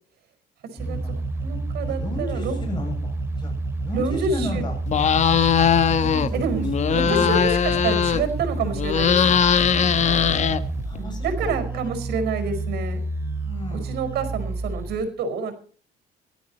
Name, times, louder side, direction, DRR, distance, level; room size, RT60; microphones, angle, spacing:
voice 1, 0.7-1.3 1.9-3.5 3.8-4.8 5.8-6.5 6.8-7.4 9.6-10.3 10.9-11.5 13.4-13.9, left 1 dB, 25° left, 4 dB, 7.5 m, -35 dB
sound 1, 0.8-15.0, right 2 dB, 15° right, 4.5 m, -29 dB
voice 2, 1.4-2.6 3.9-4.6 6.3-6.7 6.9-9.4 11.0-13.0 13.7-15.5, right 4 dB, 70° right, 9 dB, 5.1 m, -28 dB
sound 2, 4.9-6.3 6.6-8.4 8.7-11.0, left 8 dB, 45° left, 1.2 m, -20 dB
17.0 x 13.0 x 4.4 m, 0.43 s
cardioid pair, 110°, 17 cm